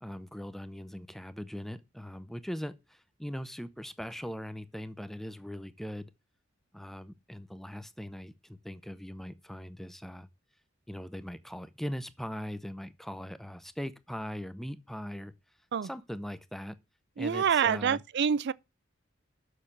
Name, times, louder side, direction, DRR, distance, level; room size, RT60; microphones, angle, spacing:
voice 1, 0.0-6.1 6.7-10.3 10.9-15.3 15.8-16.8 17.2-18.0, equal, ahead, 0.6 m, -40 dB
voice 2, 17.2-18.5, right 7 dB, 55° right, 0.4 m, -27 dB
6.7 x 6.6 x 7.2 m
head